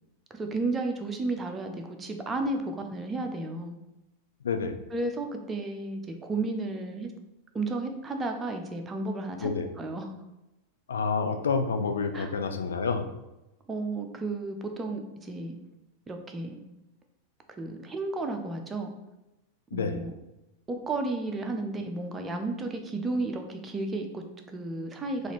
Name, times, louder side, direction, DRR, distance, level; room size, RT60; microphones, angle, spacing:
voice 1, 0.3-3.8 4.9-7.1 7.5-9.5 9.8-10.1 12.1-12.3 13.7-15.6 16.1-16.6 17.6-18.9 19.7-20.1 20.7-25.3, right 2 dB, 15° right, 4 dB, 0.5 m, -33 dB
voice 2, 4.4-4.8 9.4-9.7 10.9-13.0 19.7-20.0, left 5 dB, 65° left, 7 dB, 0.4 m, -28 dB
3.9 x 2.5 x 3.0 m, 0.97 s
figure-of-eight pair, 90°, 0 cm